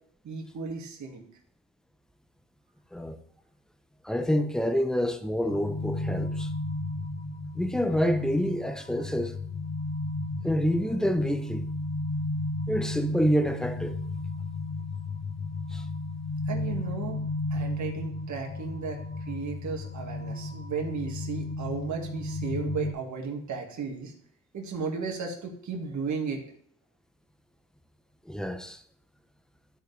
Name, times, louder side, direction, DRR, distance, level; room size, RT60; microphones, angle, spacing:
voice 1, 0.2-1.2 16.5-17.2 17.5-24.1 24.5-26.4, right 5 dB, 50° right, 1.9 m, -34 dB
voice 2, 4.0-6.5 7.6-9.3 10.4-11.6 12.7-14.0 15.7-15.8 28.3-28.8, equal, ahead, 0.7 m, -27 dB
sound 1, 5.4-22.9, left 2 dB, 50° left, 1.1 m, -34 dB
12.5 x 4.4 x 3.4 m
cardioid pair, 90°, 36 cm